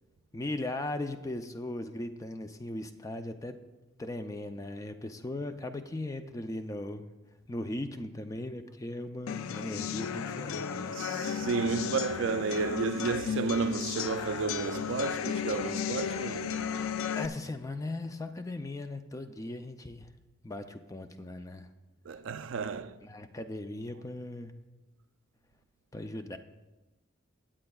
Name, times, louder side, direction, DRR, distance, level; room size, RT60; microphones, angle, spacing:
voice 1, 0.3-3.6 4.0-7.1 7.5-11.0 17.1-20.1 20.4-21.7 23.0-24.5 25.9-26.4, left 2 dB, 15° left, 0.4 m, -38 dB
sound 1, 9.3-17.3, left 7 dB, 80° left, 0.4 m, -34 dB
voice 2, 10.9-16.8 22.1-23.0, right 5 dB, 65° right, 0.4 m, -32 dB
16.5 x 8.7 x 2.3 m
head